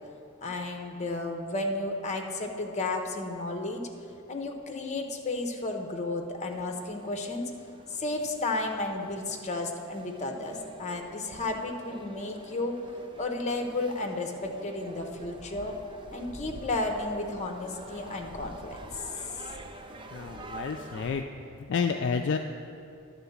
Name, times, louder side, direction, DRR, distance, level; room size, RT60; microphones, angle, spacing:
voice 1, 0.4-3.8 4.3-7.5 7.9-12.8 13.2-15.7 16.1-19.0, left 2 dB, 30° left, 3 dB, 0.7 m, -33 dB
sound 1, 6.5-21.2, right 2 dB, 25° right, 0.4 m, -47 dB
voice 2, 20.1-21.2 21.7-22.4, left 5 dB, 55° left, 5 dB, 0.3 m, -29 dB
11.0 x 3.8 x 7.1 m, 2.5 s
head